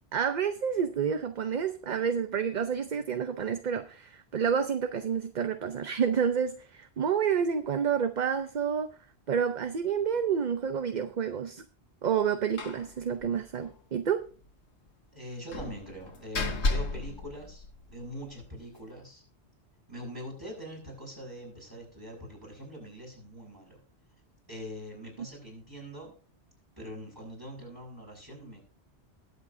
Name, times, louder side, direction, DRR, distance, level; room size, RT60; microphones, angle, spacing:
voice 1, 0.1-8.9 9.3-11.6 12.0-14.2, right 7 dB, 50° right, 9 dB, 0.7 m, -29 dB
Slam, 12.6-12.9 13.2-13.3 13.6-13.7 15.5-18.1, left 3 dB, 85° left, 1.6 m, -33 dB
voice 2, 15.1-19.2 19.9-23.8 24.5-26.1 26.8-28.6, equal, 20° right, -2 dB, 6.3 m, -43 dB
20.5 x 7.7 x 2.6 m, 0.38 s
omnidirectional pair, 1.1 m